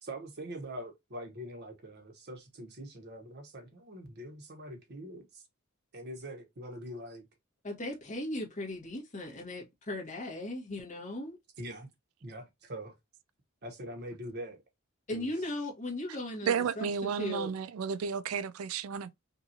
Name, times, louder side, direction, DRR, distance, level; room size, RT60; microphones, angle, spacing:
voice 1, 0.0-5.4 5.9-7.2 11.6-11.9 12.2-12.9 13.6-14.6 15.1-15.3, right 1 dB, 55° right, 1.2 m, -43 dB
voice 2, 7.6-11.4 15.1-17.5, left 1 dB, 35° left, 1.6 m, -37 dB
voice 3, 16.4-19.1, right 6 dB, 70° right, 0.4 m, -32 dB
5.4 x 2.6 x 2.8 m
head